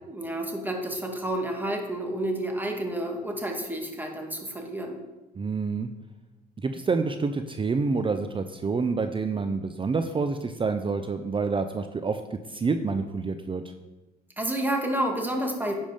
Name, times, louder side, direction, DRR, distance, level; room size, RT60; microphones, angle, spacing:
voice 1, 0.1-5.0 14.4-15.7, right 1 dB, 10° right, 2 dB, 2.2 m, -30 dB
voice 2, 5.4-5.9 6.6-13.6, right 4 dB, 25° right, 8 dB, 0.6 m, -28 dB
10.0 x 5.2 x 5.3 m, 1.1 s
hypercardioid pair, 65°, 21 cm